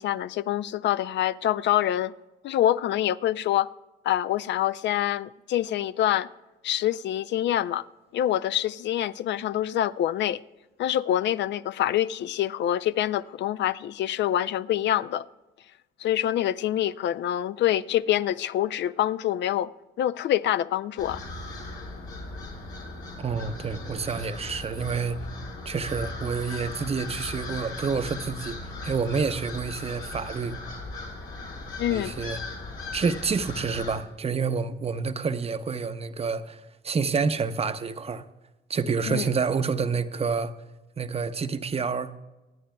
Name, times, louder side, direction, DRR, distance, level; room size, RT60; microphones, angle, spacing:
voice 1, 0.0-2.1 2.4-3.7 4.0-6.3 6.6-7.8 8.1-10.4 10.8-15.2 16.0-19.7 20.0-21.2 31.8-32.2 39.1-39.3, left 12 dB, 65° left, 0.4 m, -26 dB
sound 1, 21.0-34.0, left 2 dB, 85° left, 3.9 m, -38 dB
voice 2, 23.2-25.2 25.7-28.6 28.8-30.5 31.9-32.4 32.9-38.2 38.7-40.5 41.0-42.1, right 5 dB, 30° right, 0.6 m, -28 dB
26.5 x 9.3 x 2.2 m
cardioid pair, 90°, 20 cm